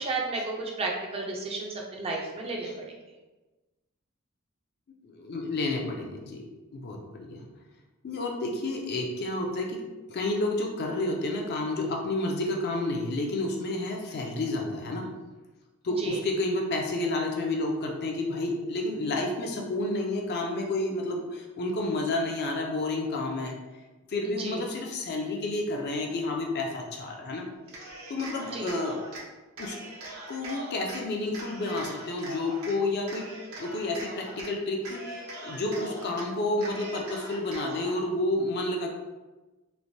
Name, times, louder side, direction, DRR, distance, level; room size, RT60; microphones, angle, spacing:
voice 1, 0.0-3.0 16.0-16.2 24.2-24.6 28.5-28.7, right 3 dB, 30° right, -1 dB, 0.4 m, -33 dB
voice 2, 5.0-6.4 6.7-7.4 8.0-9.8 10.1-15.1 15.8-23.6 24.1-27.5 28.1-29.0 29.6-29.8 30.3-33.3 33.6-35.0 35.4-38.9, left 2 dB, 50° left, 1 dB, 0.4 m, -30 dB
Cheering, 27.6-29.2 29.6-31.0 31.3-32.7 33.1-34.5 34.8-36.2 36.6-38.0, right 1 dB, 75° right, 0.7 m, -41 dB
3.1 x 2.1 x 2.6 m, 1.2 s
head